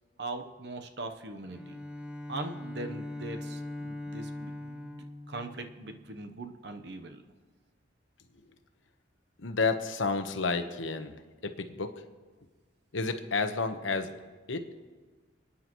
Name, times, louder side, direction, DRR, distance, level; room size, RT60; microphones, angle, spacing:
voice 1, 0.2-1.8 2.3-7.2, right 2 dB, 60° right, 6 dB, 0.9 m, -41 dB
Bowed string instrument, 1.4-6.2, left 1 dB, 5° right, 1.5 m, -41 dB
voice 2, 9.4-11.2 11.4-12.0 12.9-14.1 14.5-14.7, left 4 dB, 90° left, 8 dB, 1.1 m, -31 dB
29.0 x 9.8 x 3.1 m, 1.4 s
head